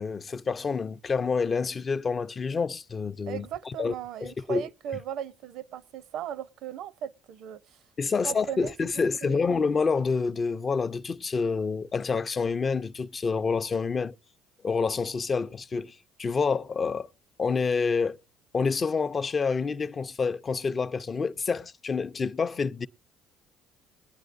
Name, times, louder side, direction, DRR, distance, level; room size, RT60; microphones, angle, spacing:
voice 1, 0.0-3.9 4.2-4.6 8.0-14.1 14.6-17.1 17.4-18.2 18.5-22.9, left 5 dB, 35° left, 0.5 m, -28 dB
voice 2, 3.3-7.8 8.2-8.8 9.2-9.5, right 10 dB, 70° right, 0.6 m, -37 dB
21.5 x 9.1 x 2.5 m
hypercardioid pair, 65°, 0 cm